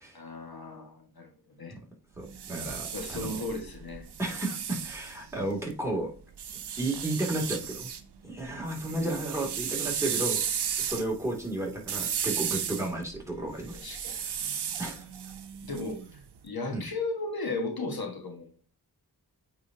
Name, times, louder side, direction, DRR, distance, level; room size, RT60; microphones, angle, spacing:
voice 1, 0.1-1.8 2.9-4.1 8.8-9.2 13.7-14.1 15.6-18.5, left 2 dB, 65° left, 2 dB, 1.5 m, -36 dB
voice 2, 2.2-3.4 4.2-6.1 6.8-7.9 8.2-10.4 10.8-13.8 14.1-14.3 14.8-15.1 16.7-16.9, right 1 dB, 5° right, -1 dB, 2.4 m, -33 dB
sound 1, 2.2-5.7 6.4-8.0 8.4-16.3, right 8 dB, 75° right, 0.7 m, -34 dB
8.7 x 4.1 x 2.7 m, 0.37 s
cardioid pair, 45°, 40 cm